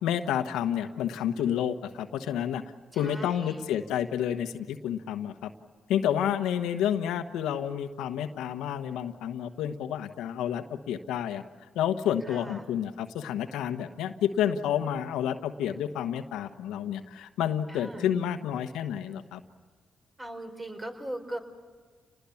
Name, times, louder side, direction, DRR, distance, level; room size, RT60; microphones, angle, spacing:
voice 1, 0.0-2.6 2.9-5.5 5.9-11.4 11.7-19.4, left 9 dB, 90° left, 7 dB, 1.2 m, -30 dB
voice 2, 2.9-3.6 12.3-12.7 17.7-18.1 20.2-21.4, right 1 dB, 20° right, 5 dB, 4.8 m, -39 dB
29.0 x 20.5 x 7.2 m, 1.5 s
supercardioid pair, 65°, 0 cm